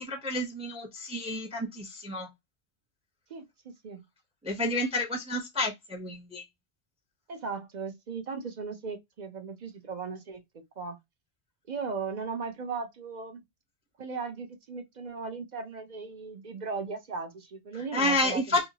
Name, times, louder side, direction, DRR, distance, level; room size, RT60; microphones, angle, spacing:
voice 1, 0.0-2.3 4.4-6.4 17.7-18.7, left 1 dB, 10° right, 0.4 m, -30 dB
voice 2, 3.3-4.0 7.3-11.0 11.7-13.4 14.0-18.6, right 5 dB, 50° right, 0.6 m, -37 dB
2.7 x 2.7 x 2.7 m
omnidirectional pair, 1.2 m